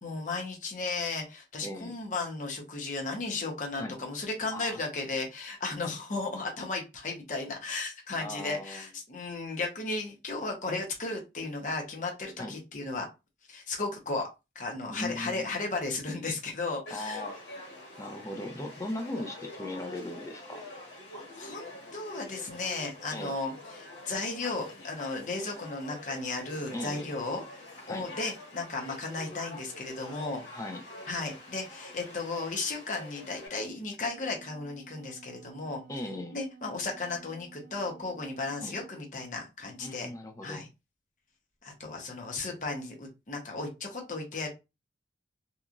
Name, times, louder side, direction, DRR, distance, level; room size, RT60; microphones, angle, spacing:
voice 1, 0.0-13.1 13.5-14.3 14.5-17.2 21.3-27.4 27.9-30.4 31.1-35.8 36.3-40.1 40.4-40.7 41.6-44.5, left 3 dB, 45° left, 1 dB, 0.9 m, -35 dB
voice 2, 1.6-1.9 3.8-4.0 4.4-4.8 5.8-6.0 8.2-8.9 12.4-12.5 14.9-15.7 16.9-17.3 18.0-20.6 23.1-23.3 26.7-27.2 27.9-28.1 30.5-30.8 35.9-36.4 38.6-38.7 39.8-40.6, left 1 dB, 20° left, 5 dB, 0.4 m, -38 dB
Conversation / Crowd, 16.9-33.5, left 2 dB, 90° left, 1.6 m, -46 dB
Wind instrument woodwind instrument, 33.8-39.0, right 5 dB, 45° right, 0.7 m, -53 dB
2.9 x 2.4 x 2.4 m, 0.26 s
head